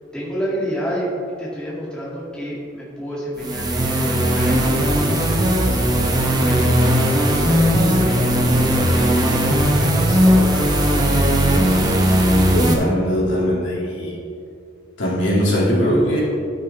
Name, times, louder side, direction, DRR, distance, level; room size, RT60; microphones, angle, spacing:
voice 1, 0.1-9.1 9.7-10.9, equal, 5° left, -8 dB, 2.4 m, -30 dB
sound 1, 3.4-12.7, equal, 20° right, 1.0 m, -17 dB
voice 2, 12.5-14.2 15.0-16.2, equal, 70° left, -5 dB, 2.5 m, -20 dB
14.0 x 6.7 x 3.4 m, 2.5 s
head